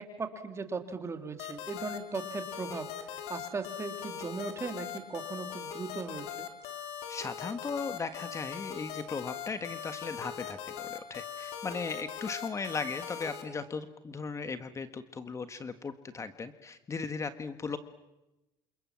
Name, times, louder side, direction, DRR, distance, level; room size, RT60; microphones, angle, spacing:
voice 1, 0.0-6.5, right 4 dB, 25° right, 7 dB, 3.2 m, -38 dB
sound 1, 1.4-13.4, left 8 dB, 80° left, 3.8 m, -40 dB
voice 2, 7.1-17.8, left 4 dB, 25° left, 10 dB, 1.5 m, -37 dB
28.0 x 27.5 x 7.6 m, 0.99 s
supercardioid pair, 105°, 11 cm